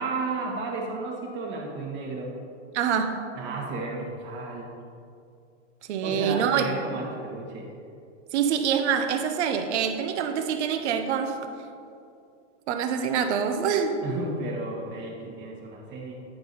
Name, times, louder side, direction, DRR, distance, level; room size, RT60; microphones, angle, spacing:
voice 1, 0.0-2.4 3.3-4.7 6.0-7.7 14.0-16.2, right 3 dB, 30° right, -1 dB, 1.5 m, -33 dB
voice 2, 2.7-3.2 5.9-6.6 8.3-11.4 12.7-14.0, right 7 dB, 65° right, 7 dB, 1.0 m, -25 dB
10.0 x 5.9 x 4.0 m, 2.4 s
supercardioid pair, 145°, 37 cm